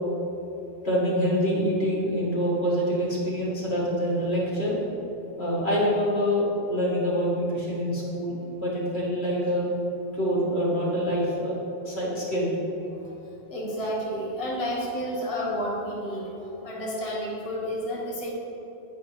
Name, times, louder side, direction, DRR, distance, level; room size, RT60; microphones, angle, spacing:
voice 1, 0.8-4.8 5.4-9.7 10.2-11.6 11.8-12.5, equal, 85° left, -6 dB, 2.2 m, -26 dB
voice 2, 12.9-18.3, equal, 35° left, -4 dB, 1.2 m, -31 dB
8.9 x 4.9 x 4.7 m, 3.0 s
omnidirectional pair, 1.0 m